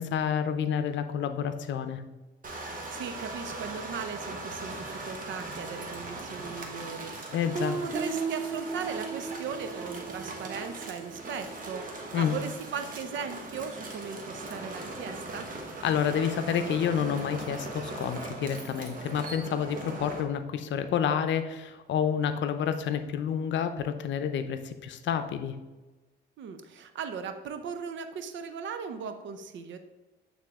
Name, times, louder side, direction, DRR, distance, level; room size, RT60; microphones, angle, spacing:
voice 1, 0.0-2.0 7.3-7.8 12.1-12.4 15.8-25.6, left 8 dB, 70° left, 10 dB, 0.6 m, -29 dB
sound 1, 2.4-20.2, right 2 dB, 45° right, 1.4 m, -40 dB
voice 2, 2.9-7.4 7.8-15.5 26.4-29.8, right 6 dB, 70° right, 8 dB, 0.7 m, -38 dB
Guitar, 7.5-12.2, right 5 dB, 15° right, 0.5 m, -37 dB
8.7 x 3.6 x 3.6 m, 1.2 s
cardioid pair, 90°, 20 cm